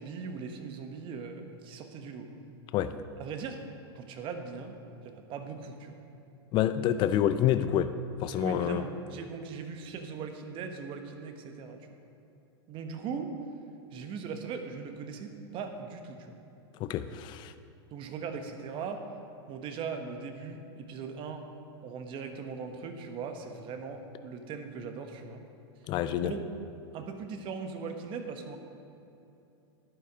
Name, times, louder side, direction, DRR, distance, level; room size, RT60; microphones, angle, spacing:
voice 1, 0.0-2.3 3.2-3.6 3.9-4.8 5.0-6.0 8.3-11.9 12.7-13.3 13.9-16.4 17.9-19.0 19.5-21.5 21.8-25.4 26.2-26.4 26.9-28.6, right 5 dB, 40° right, 6 dB, 1.2 m, -39 dB
voice 2, 6.5-7.9 8.2-8.8 16.8-17.5 25.9-26.3, left 11 dB, 35° left, 11 dB, 0.5 m, -27 dB
11.0 x 8.5 x 5.0 m, 2.9 s
hypercardioid pair, 120°, 14 cm